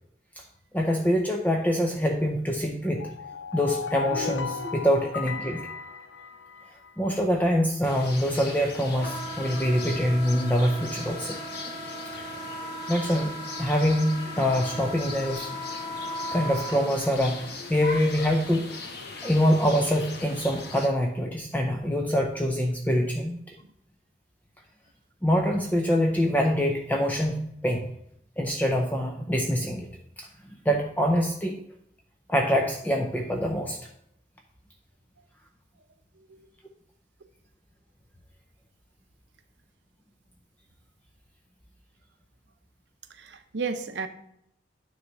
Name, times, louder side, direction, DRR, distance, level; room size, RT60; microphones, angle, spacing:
voice 1, 0.7-3.1 3.5-5.6 7.0-11.4 12.1-12.2 12.9-13.3 13.6-15.5 16.3-18.7 19.2-23.6 25.2-27.9 28.4-29.9 30.2-30.3 30.7-31.6 32.3-33.8, equal, 10° left, 1 dB, 0.5 m, -25 dB
sound 1, 2.9-6.9, left 6 dB, 75° left, 0.5 m, -35 dB
sound 2, 7.8-20.9, left 3 dB, 60° left, 1.0 m, -40 dB
Wind instrument woodwind instrument, 9.0-16.8, equal, 35° left, 1.3 m, -37 dB
voice 2, 36.1-36.5 43.1-44.1, right 4 dB, 70° right, 8 dB, 0.7 m, -34 dB
9.7 x 3.3 x 5.2 m, 0.76 s
head